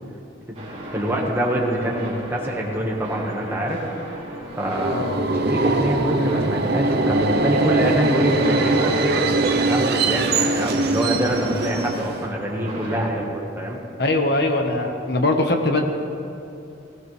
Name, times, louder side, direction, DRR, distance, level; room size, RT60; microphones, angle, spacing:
sound 1, 0.5-13.1, right 1 dB, 30° right, 3.5 m, -35 dB
voice 1, 0.9-3.8 4.6-9.0 9.5-13.8, right 1 dB, 10° right, -2 dB, 1.7 m, -25 dB
Subway metro underground, 4.6-12.3, right 2 dB, 55° right, 0.9 m, -22 dB
voice 2, 4.9-5.2 14.0-15.8, left 2 dB, 55° left, 4 dB, 1.4 m, -21 dB
18.0 x 17.0 x 3.4 m, 2.7 s
head